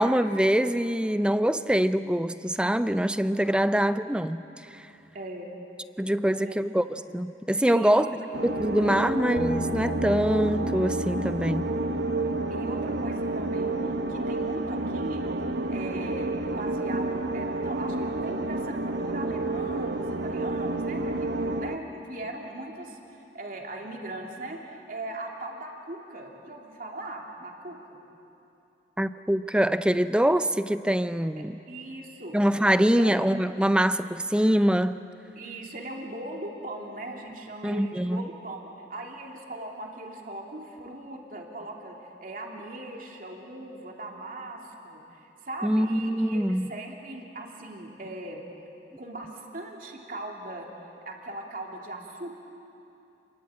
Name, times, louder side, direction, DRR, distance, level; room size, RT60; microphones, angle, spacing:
voice 1, 0.0-4.4 4.7-4.9 6.0-6.8 7.1-8.1 8.4-11.7 29.0-31.6 32.3-35.0 37.6-38.3 45.6-46.7, equal, 5° right, 12 dB, 0.5 m, -24 dB
voice 2, 5.1-5.5 6.2-6.6 7.7-8.2 9.0-9.1 12.5-13.8 14.1-15.2 15.7-23.0 23.3-28.0 31.4-32.4 33.0-33.1 35.4-48.4 49.0-50.7 51.0-52.3, right 1 dB, 50° right, 0 dB, 3.0 m, -39 dB
sound 1, 8.3-21.8, right 2 dB, 70° right, 1.1 m, -30 dB
sound 2, 9.4-15.6, left 1 dB, 90° left, 3.2 m, -39 dB
29.0 x 22.5 x 8.8 m, 2.8 s
head